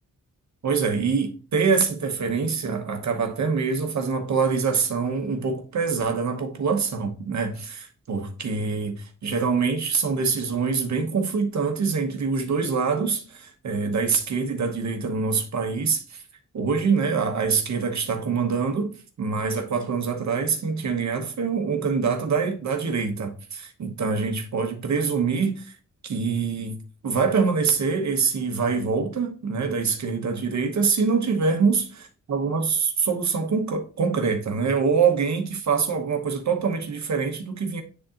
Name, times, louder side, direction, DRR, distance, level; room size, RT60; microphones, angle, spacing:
voice 1, 0.6-16.2 16.5-25.8 26.0-26.8 27.0-37.8, right 5 dB, 65° right, 1.0 m, -25 dB
9.4 x 3.7 x 2.9 m
wide cardioid pair, 150°, 30 cm